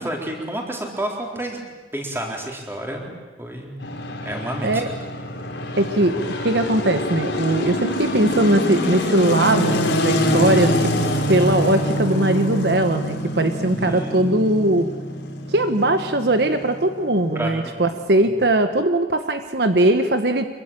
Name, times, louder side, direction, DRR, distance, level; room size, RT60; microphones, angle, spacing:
voice 1, 0.0-1.6 1.9-3.1 3.4-3.7 4.2-4.8 13.7-14.3 17.3-17.5, right 1 dB, 15° right, 0 dB, 4.1 m, -29 dB
sound 1, 3.8-18.0, left 1 dB, 80° left, 4.1 m, -25 dB
voice 2, 5.8-10.9 11.3-14.9 15.5-20.4, right 1 dB, 60° right, 8 dB, 1.1 m, -20 dB
25.5 x 22.5 x 9.0 m, 1.3 s
head